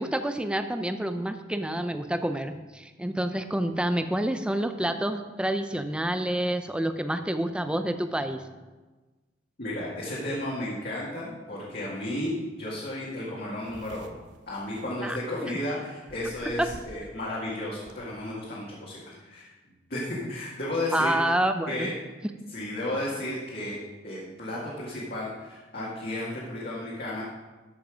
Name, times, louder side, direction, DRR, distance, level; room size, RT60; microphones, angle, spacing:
voice 1, 0.0-8.4 15.0-15.2 16.6-16.7 20.9-21.9, right 1 dB, 5° right, 8 dB, 0.5 m, -28 dB
voice 2, 9.6-14.2 14.5-19.5 19.9-21.1 21.7-21.9 22.5-23.8 24.0-27.2, left 1 dB, 55° left, -6 dB, 2.0 m, -33 dB
sound 1, 12.9-13.0 13.2-15.6 16.1-17.1 17.4-17.9, right 1 dB, 75° right, 1.0 m, -48 dB
13.0 x 5.8 x 5.0 m, 1.2 s
head